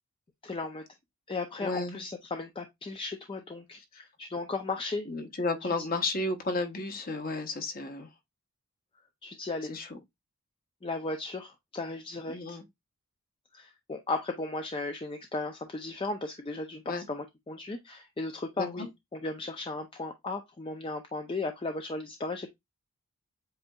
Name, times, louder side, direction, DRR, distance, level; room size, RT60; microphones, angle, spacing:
voice 1, 0.4-0.8 1.3-5.1 5.6-5.7 9.2-9.7 10.8-12.6 13.5-22.5, left 3 dB, 25° left, 0.4 m, -36 dB
voice 2, 1.6-2.0 5.1-8.1 9.7-9.9 12.3-12.6 16.9-17.0 18.6-18.9, left 3 dB, 40° left, 0.9 m, -32 dB
7.7 x 2.6 x 2.3 m
head